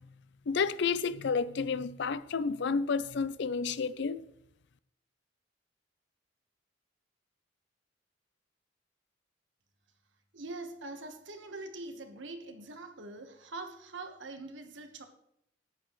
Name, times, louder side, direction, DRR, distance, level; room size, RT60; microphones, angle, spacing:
voice 1, 0.5-4.2, left 5 dB, 70° left, 0.5 m, -30 dB
voice 2, 10.3-15.0, right 2 dB, 80° right, 1.4 m, -43 dB
14.0 x 9.5 x 3.1 m
head